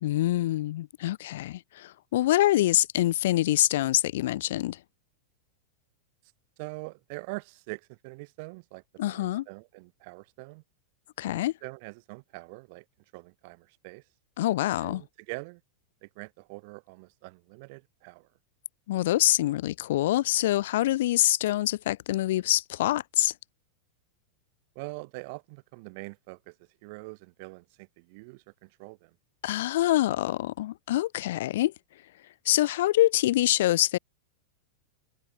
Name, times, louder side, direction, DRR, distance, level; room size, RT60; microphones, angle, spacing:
voice 1, 0.0-4.8 9.0-9.4 11.2-11.5 14.4-15.0 18.9-23.3 29.4-31.7 32.4-34.0, left 15 dB, 70° left, 1.2 m, -25 dB
voice 2, 6.6-10.6 11.3-12.8 13.1-14.0 14.8-15.6 16.0-18.3 24.8-29.1, right 29 dB, 55° right, 7.0 m, -43 dB
hypercardioid pair, 120°, 0 cm